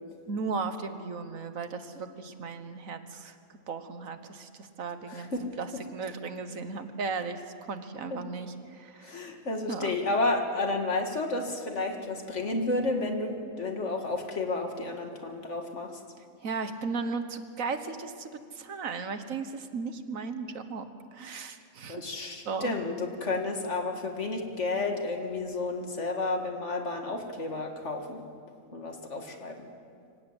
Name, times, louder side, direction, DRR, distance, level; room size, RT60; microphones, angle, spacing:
voice 1, 0.3-3.3 3.7-9.3 9.7-9.9 16.4-20.9 21.1-22.1 22.4-22.7, right 4 dB, 70° right, 9 dB, 1.6 m, -36 dB
voice 2, 5.1-5.5 8.1-8.2 9.0-16.0 21.9-28.2 28.7-29.7, left 2 dB, 55° left, 4 dB, 2.3 m, -31 dB
25.0 x 17.5 x 8.1 m, 2.3 s
omnidirectional pair, 1.5 m